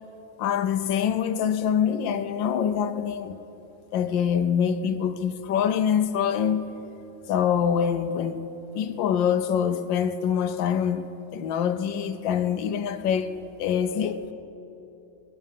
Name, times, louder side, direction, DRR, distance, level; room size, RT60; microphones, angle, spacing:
voice 1, 0.4-3.4 3.9-6.7 7.3-8.5 8.7-14.2, left 8 dB, 75° left, 1.4 m, -25 dB
20.0 x 10.5 x 5.6 m
omnidirectional pair, 2.1 m